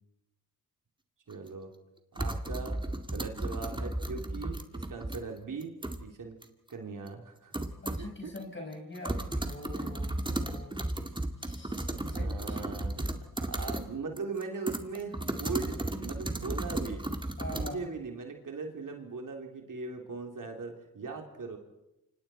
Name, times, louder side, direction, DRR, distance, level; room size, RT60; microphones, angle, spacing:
sound 1, 1.3-1.4 2.2-5.2 5.6-6.0 6.4-6.5 7.1-7.2 7.5-8.1 8.4-8.5 8.7-13.9 14.2-17.7, right 1 dB, 15° right, 2.1 m, -34 dB
voice 1, 1.3-1.7 2.1-2.8 3.1-5.7 6.0-6.4 6.7-7.5 8.0-8.3 9.7-9.9 11.9-17.1 17.5-21.6, right 4 dB, 55° right, 2 dB, 3.5 m, -40 dB
voice 2, 7.8-10.8 11.4-12.6 17.4-17.8, left 1 dB, 30° left, 2 dB, 5.1 m, -44 dB
29.0 x 26.0 x 4.5 m, 0.92 s
cardioid pair, 65°, 37 cm